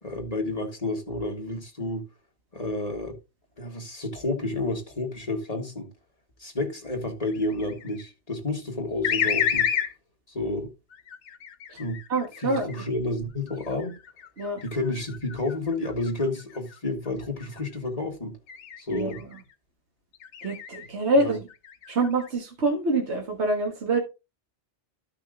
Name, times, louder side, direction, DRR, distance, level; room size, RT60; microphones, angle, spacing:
voice 1, 0.0-2.0 2.5-3.2 3.6-5.9 6.4-9.7 10.3-10.7 11.7-12.0 12.4-13.9 14.6-18.4 18.8-19.2 21.2-21.4, left 2 dB, 35° left, 1.9 m, -30 dB
sound 1, 7.3-8.0 9.0-9.9 10.9-12.8 13.5-16.8 17.2-17.6 18.5-19.4 20.1-20.9 21.4-22.3, left 8 dB, 80° left, 1.1 m, -31 dB
voice 2, 12.1-12.7 14.4-14.6 18.9-19.1 20.4-21.5 21.9-24.0, right 2 dB, 75° right, 1.7 m, -25 dB
14.0 x 5.9 x 2.4 m
omnidirectional pair, 1.2 m